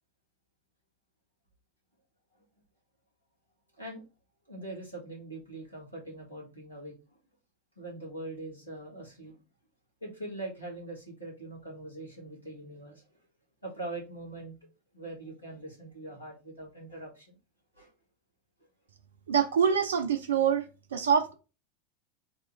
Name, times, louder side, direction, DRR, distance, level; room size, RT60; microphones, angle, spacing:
voice 1, 4.5-6.9 7.8-9.4 10.0-13.1 13.6-14.5 14.9-17.3 17.7-17.9, right 2 dB, 90° left, 1.5 m, -42 dB
voice 2, 19.3-20.6 20.9-21.3, right 7 dB, 70° right, 0.4 m, -25 dB
3.6 x 2.4 x 3.0 m
figure-of-eight pair, 85°, 0 cm